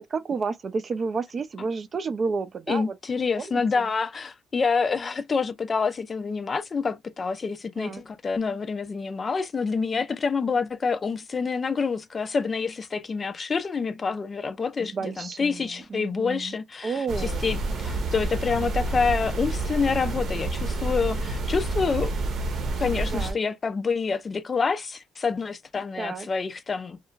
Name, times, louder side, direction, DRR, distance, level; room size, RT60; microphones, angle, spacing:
voice 1, 0.0-3.0 3.4-3.9 7.8-8.0 14.8-16.5 16.8-17.5 23.1-23.4 26.0-26.3, right 4 dB, 40° right, 0.4 m, -31 dB
voice 2, 2.7-16.9 17.4-22.1 22.8-27.0, left 5 dB, 35° left, 0.3 m, -27 dB
sound 1, 17.1-23.3, right 2 dB, 65° right, 0.8 m, -29 dB
2.9 x 2.4 x 2.2 m
cardioid pair, 110°, 0 cm